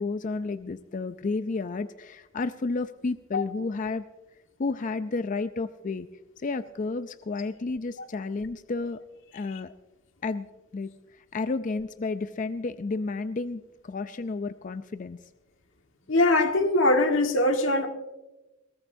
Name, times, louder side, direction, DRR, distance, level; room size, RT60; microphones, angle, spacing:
voice 1, 0.0-4.0 4.6-6.1 6.4-9.0 9.3-9.7 10.2-10.5 10.7-15.2, left 3 dB, 40° left, 11 dB, 0.4 m, -31 dB
voice 2, 16.1-17.9, left 2 dB, 90° left, 5 dB, 1.6 m, -22 dB
21.5 x 18.0 x 2.7 m, 1.0 s
head